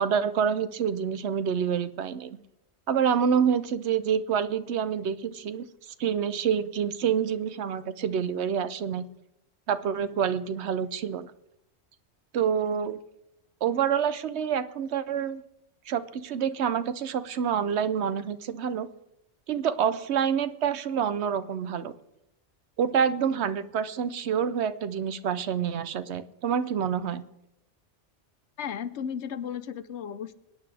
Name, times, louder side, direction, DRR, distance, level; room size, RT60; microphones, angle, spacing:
voice 1, 0.0-2.4 2.9-9.1 9.7-11.3 12.3-13.0 13.6-15.4 15.9-18.9 19.5-21.9 22.8-27.2, right 7 dB, 70° right, 13 dB, 0.9 m, -27 dB
voice 2, 28.6-30.3, left 8 dB, 75° left, 13 dB, 1.0 m, -34 dB
23.5 x 9.7 x 3.4 m, 0.84 s
omnidirectional pair, 1.2 m